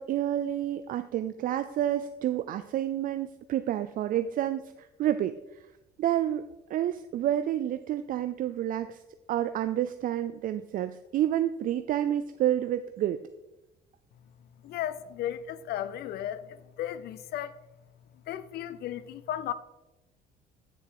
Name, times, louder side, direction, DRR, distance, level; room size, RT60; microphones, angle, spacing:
voice 1, 0.0-5.6 6.0-9.0 9.3-13.2, right 11 dB, 55° right, 0.4 m, -29 dB
voice 2, 14.6-17.5 18.3-19.5, left 11 dB, 70° left, 0.6 m, -35 dB
8.5 x 6.9 x 4.7 m
cardioid pair, 110°, 17 cm